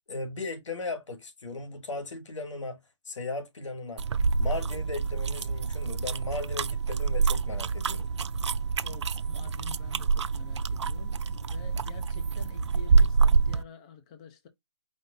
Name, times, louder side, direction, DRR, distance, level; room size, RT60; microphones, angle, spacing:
voice 1, 0.1-2.8 3.0-4.0 4.4-8.1, left 3 dB, 85° left, 2.3 m, -36 dB
sound 1, 4.0-13.6, right 4 dB, 70° right, 0.5 m, -27 dB
voice 2, 8.8-14.5, left 7 dB, 15° left, 0.4 m, -48 dB
5.3 x 2.4 x 3.8 m
hypercardioid pair, 170°, 15 cm